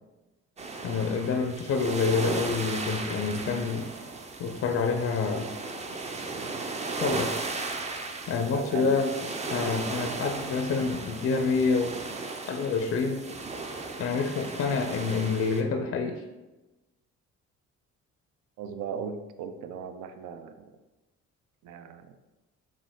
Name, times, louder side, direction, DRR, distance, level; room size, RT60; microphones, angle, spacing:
sound 1, 0.6-15.6, right 3 dB, 25° right, 0.4 m, -36 dB
voice 1, 0.8-3.8 4.4-5.5 7.0-7.5 8.3-9.1 9.5-12.0 12.5-13.3 14.0-16.2, left 4 dB, 50° left, 4 dB, 0.4 m, -27 dB
voice 2, 8.5-8.9 18.6-20.8 21.6-22.2, right 6 dB, 80° right, 8 dB, 0.5 m, -38 dB
4.2 x 2.5 x 3.6 m, 1.1 s
cardioid pair, 90°, 30 cm